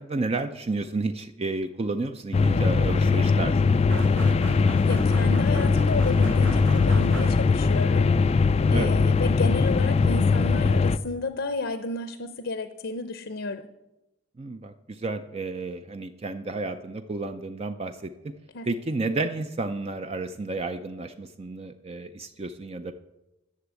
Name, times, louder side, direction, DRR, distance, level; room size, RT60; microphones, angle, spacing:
voice 1, 0.0-3.8 8.7-8.9 14.4-18.3 18.6-22.9, right 3 dB, 30° right, 8 dB, 0.5 m, -31 dB
sound 1, 2.3-11.0, left 4 dB, 30° left, 0.3 m, -21 dB
sound 2, 3.9-7.8, right 3 dB, 70° right, 1.1 m, -38 dB
voice 2, 4.7-8.1 8.7-13.6 18.5-18.7, left 3 dB, 60° left, 10 dB, 0.7 m, -32 dB
11.5 x 7.0 x 8.2 m, 0.97 s
head